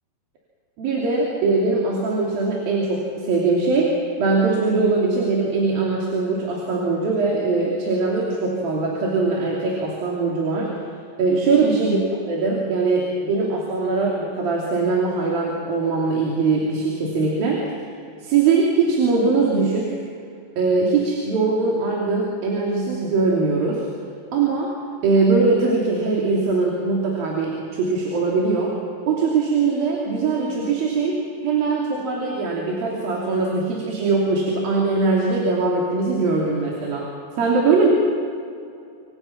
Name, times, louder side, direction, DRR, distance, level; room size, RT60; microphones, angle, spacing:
voice 1, 0.8-10.7 11.2-12.0 12.3-17.6 18.2-20.0 20.6-23.9 24.3-24.8 25.0-28.8 29.1-37.1 37.4-37.9, right 3 dB, 75° right, -3 dB, 4.8 m, -21 dB
28.0 x 25.0 x 6.0 m, 2.5 s
omnidirectional pair, 4.2 m